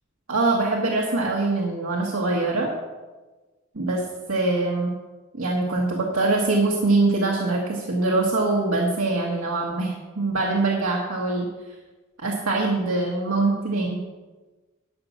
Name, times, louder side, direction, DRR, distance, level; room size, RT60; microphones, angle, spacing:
voice 1, 0.3-2.7 3.7-4.0 4.3-4.9 5.3-11.5 12.2-14.0, right 2 dB, 85° right, -2 dB, 1.5 m, -23 dB
11.5 x 5.7 x 7.1 m, 1.2 s
head